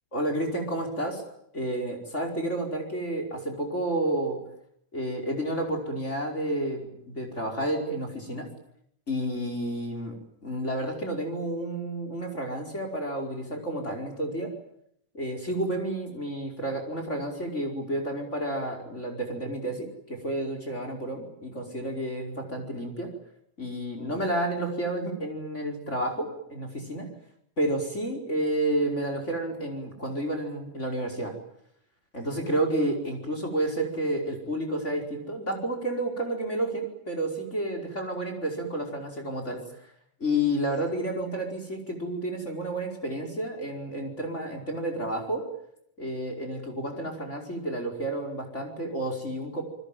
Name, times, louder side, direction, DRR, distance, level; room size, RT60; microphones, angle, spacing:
voice 1, 0.1-1.2 1.5-4.4 4.9-8.5 9.1-10.2 10.4-14.5 15.1-23.1 23.6-27.1 27.6-31.3 32.1-39.6 40.2-45.4 46.0-49.6, right 1 dB, 20° left, 3 dB, 5.2 m, -30 dB
28.5 x 21.0 x 9.2 m, 0.73 s
omnidirectional pair, 3.7 m